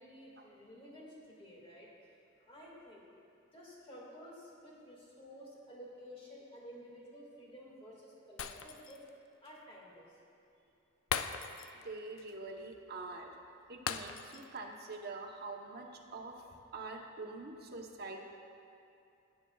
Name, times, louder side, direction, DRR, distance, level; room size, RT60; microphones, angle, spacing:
voice 1, 0.0-3.1 3.5-9.0 9.4-10.1, equal, 30° left, -4 dB, 2.0 m, -53 dB
Shatter, 8.4-9.1 9.5-9.6 11.1-11.9 12.2-12.3 13.9-14.6 14.9-15.1, left 7 dB, 70° left, 0.4 m, -39 dB
voice 2, 11.8-13.3 13.7-16.4 16.7-18.3, right 3 dB, 50° right, 1 dB, 0.9 m, -45 dB
17.5 x 7.6 x 2.3 m, 2.6 s
head